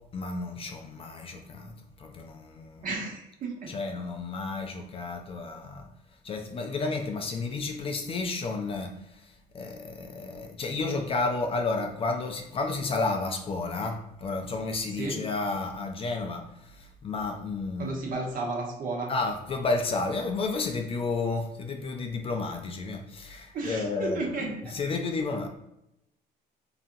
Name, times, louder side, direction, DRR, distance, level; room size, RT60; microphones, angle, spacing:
voice 1, 0.1-1.7 2.0-2.9 3.7-5.9 6.2-8.9 9.5-18.2 19.1-25.5, left 3 dB, 35° left, 4 dB, 0.3 m, -31 dB
voice 2, 2.8-3.7 14.9-15.2 17.8-19.1 23.5-24.7, right 3 dB, 55° right, 0 dB, 0.8 m, -33 dB
2.8 x 2.3 x 2.5 m, 0.84 s
cardioid pair, 110°, 17 cm